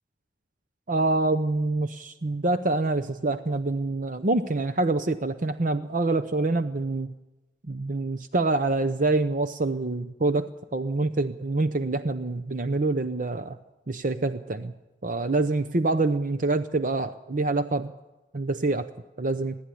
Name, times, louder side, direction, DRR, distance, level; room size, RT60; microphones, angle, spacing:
voice 1, 0.9-7.1 7.7-13.6 13.9-14.7 15.0-17.9 18.3-18.9 19.2-19.6, right 2 dB, 45° right, 10 dB, 0.7 m, -26 dB
21.0 x 15.5 x 9.9 m, 1.1 s
head